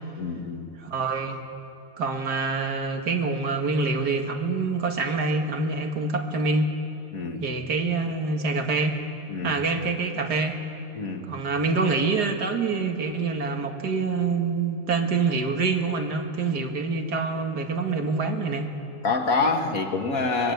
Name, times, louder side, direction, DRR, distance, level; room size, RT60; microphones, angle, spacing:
voice 1, 0.2-0.7 7.1-7.5 9.3-9.6 10.9-11.4 19.0-20.5, left 3 dB, 60° left, 4 dB, 2.2 m, -26 dB
voice 2, 0.8-1.4 2.0-6.7 7.4-9.0 9.4-10.6 11.3-18.7, right 4 dB, 80° right, 4 dB, 2.4 m, -26 dB
25.0 x 22.0 x 8.1 m, 2.7 s
omnidirectional pair, 1.7 m